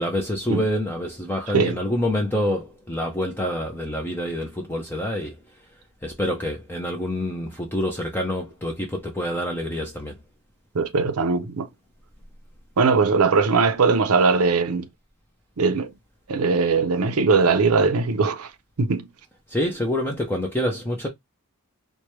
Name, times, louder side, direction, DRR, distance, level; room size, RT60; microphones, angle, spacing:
voice 1, 0.0-5.4 6.0-10.2 19.5-21.1, left 1 dB, 10° left, 0.5 m, -27 dB
voice 2, 10.7-11.7 12.8-14.9 15.6-15.9 16.3-18.5 18.8-19.1, right 4 dB, 75° right, 0.6 m, -20 dB
4.6 x 2.2 x 3.0 m
head